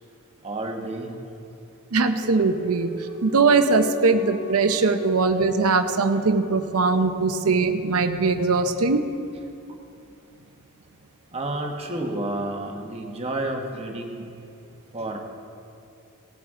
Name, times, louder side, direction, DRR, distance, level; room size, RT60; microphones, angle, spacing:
voice 1, 0.4-1.1 11.3-14.2 14.9-15.2, right 1 dB, 30° right, 1 dB, 1.2 m, -30 dB
voice 2, 1.9-2.9 3.2-9.0, right 4 dB, 75° right, 8 dB, 0.7 m, -21 dB
sound 1, 2.2-7.5, left 2 dB, 80° left, 3.0 m, -40 dB
18.5 x 9.2 x 3.7 m, 2.6 s
head